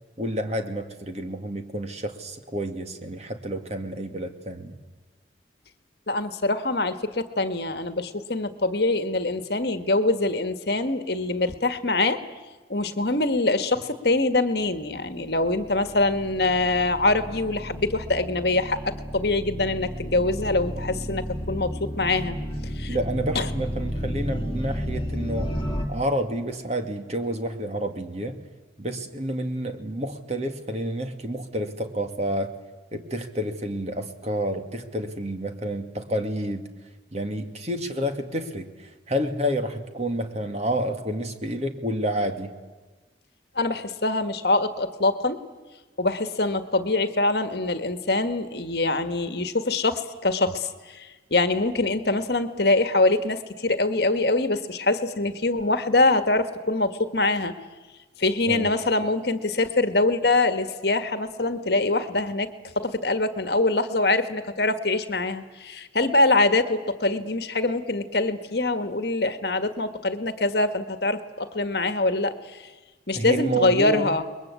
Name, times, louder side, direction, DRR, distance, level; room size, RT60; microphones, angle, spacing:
voice 1, 0.2-4.8 22.9-25.5 25.9-28.4 28.8-32.5 32.9-36.7 37.1-42.5 58.5-58.7 73.1-74.1, equal, 35° right, 6 dB, 2.2 m, -29 dB
voice 2, 6.1-12.2 12.7-22.3 22.8-23.0 23.3-23.5 43.5-45.4 46.0-57.5 58.2-62.5 62.7-72.7 73.1-74.2, left 2 dB, 60° left, 9 dB, 1.6 m, -24 dB
sound 1, 15.0-25.8, equal, 25° left, 3.3 m, -33 dB
29.0 x 21.5 x 8.4 m, 1.2 s
head